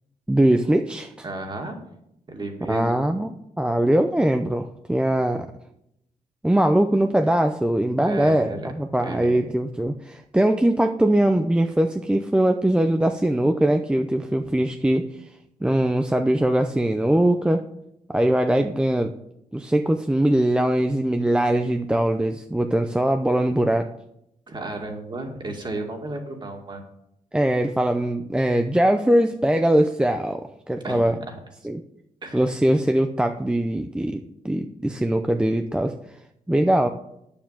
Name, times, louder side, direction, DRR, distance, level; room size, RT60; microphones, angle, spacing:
voice 1, 0.3-1.1 2.7-3.3 3.6-5.5 6.4-15.1 15.6-17.7 18.1-19.1 19.5-23.9 27.3-31.2 31.6-31.8 32.3-35.9 36.5-36.9, right 1 dB, 5° right, 5 dB, 0.6 m, -21 dB
voice 2, 1.2-1.8 2.3-2.9 8.1-8.7 9.0-9.3 24.5-26.8 30.8-31.4 32.2-32.4, right 2 dB, 35° right, 2 dB, 2.3 m, -33 dB
9.6 x 7.1 x 7.5 m, 0.78 s
cardioid pair, 120°, 14 cm